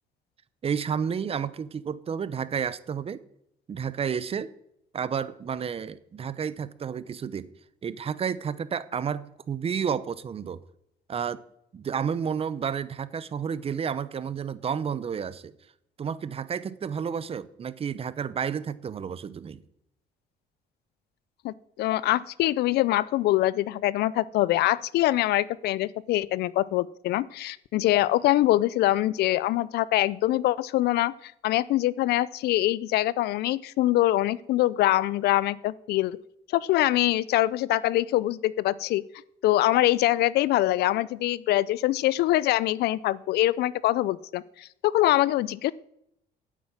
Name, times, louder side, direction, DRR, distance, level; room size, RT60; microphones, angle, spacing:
voice 1, 0.6-3.2 3.7-4.5 4.9-7.5 7.8-10.6 11.1-11.4 11.7-15.5 16.0-19.6, right 7 dB, 35° right, 0.8 m, -31 dB
voice 2, 21.4-36.2 36.5-39.0 39.4-45.7, left 15 dB, 75° left, 0.5 m, -24 dB
9.5 x 8.4 x 8.9 m
cardioid pair, 110°, 17 cm